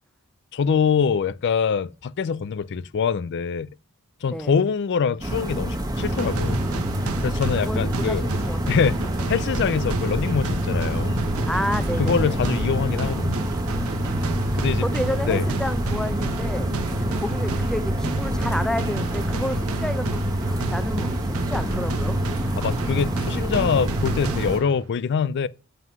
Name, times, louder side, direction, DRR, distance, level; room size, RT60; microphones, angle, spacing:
voice 1, 0.5-3.7 4.2-6.6 7.2-8.3 8.7-9.0 9.3-11.2 12.0-13.4 14.6-14.8 15.3-15.4 22.6-25.5, left 6 dB, 55° left, 0.4 m, -24 dB
voice 2, 4.3-4.6 7.6-8.7 11.5-12.4 14.1-20.2 20.5-22.2, equal, 5° left, 0.7 m, -31 dB
sound 1, 5.2-24.6, equal, 20° right, 1.5 m, -28 dB
sound 2, 6.0-24.9, right 2 dB, 70° right, 1.0 m, -28 dB
7.7 x 7.6 x 6.0 m
head